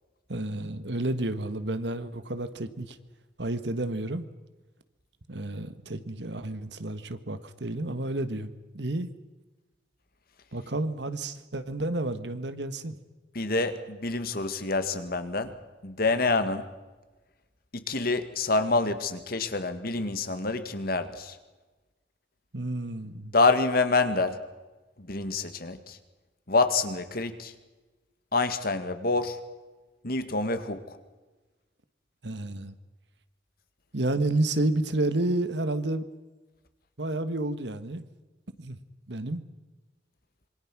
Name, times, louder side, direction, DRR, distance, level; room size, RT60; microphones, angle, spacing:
voice 1, 0.3-3.0 3.4-4.3 5.3-9.1 10.5-13.0 22.5-23.3 32.2-32.7 33.9-36.0 37.0-38.0 38.6-38.8 39.1-39.4, right 2 dB, 75° right, 11 dB, 1.6 m, -30 dB
voice 2, 13.3-15.5 15.8-16.7 17.7-21.4 23.3-24.4 25.0-26.0 26.5-27.5 28.3-29.4 30.0-31.0, left 3 dB, 55° left, 9 dB, 2.0 m, -27 dB
26.5 x 24.0 x 6.1 m, 1.2 s
head